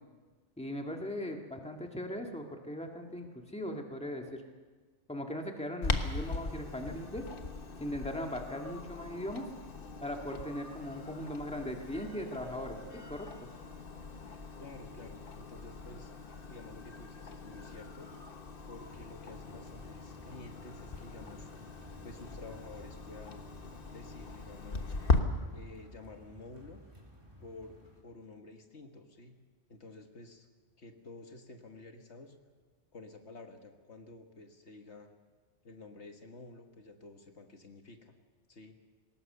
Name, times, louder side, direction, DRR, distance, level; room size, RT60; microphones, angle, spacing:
voice 1, 0.6-4.4 5.1-7.2 7.8-9.5 10.0-12.8 13.1-13.5, left 1 dB, 5° left, 2 dB, 1.8 m, -39 dB
Clock, 5.8-25.2, left 3 dB, 50° left, 1.4 m, -39 dB
voice 2, 14.6-16.1 16.5-18.1 18.7-21.5 22.0-23.5 23.9-25.0 25.5-26.8 27.4-29.4 29.7-30.5 30.8-32.4 32.9-35.1 35.6-38.1 38.5-38.8, left 3 dB, 65° left, 5 dB, 1.8 m, -51 dB
sound 1, 18.8-28.0, equal, 20° right, 3.7 m, -55 dB
20.5 x 18.5 x 6.8 m, 1.4 s
omnidirectional pair, 1.2 m